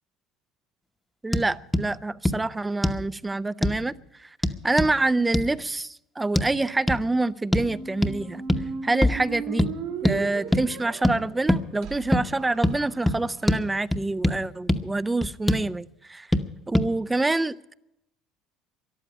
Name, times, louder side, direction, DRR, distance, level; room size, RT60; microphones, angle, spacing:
voice 1, 1.2-4.3 4.6-8.4 8.8-9.7 10.0-16.3 16.7-17.7, right 2 dB, 15° right, 18 dB, 0.5 m, -26 dB
sound 1, 1.3-1.5 1.7-1.9 2.3-2.4 2.8-3.0 3.6-3.8 4.4-4.9 5.3-5.5 6.4-6.5 6.9-7.0 7.5-7.7 8.0-8.2 8.5-8.7 9.0-9.2 9.6-9.7 10.0-10.2 10.5-10.7 11.0-11.2 11.5-11.6 12.1-12.3 12.6-12.8 13.1-13.2 13.5-13.6 13.9-14.4 14.7-14.8 15.2-15.7 16.3-16.5 16.7-16.9, left 1 dB, 5° left, 1.0 m, -23 dB
Squeak, 7.5-13.5, right 6 dB, 70° right, 1.9 m, -37 dB
13.5 x 11.5 x 8.5 m, 0.86 s
supercardioid pair, 90°, 0 cm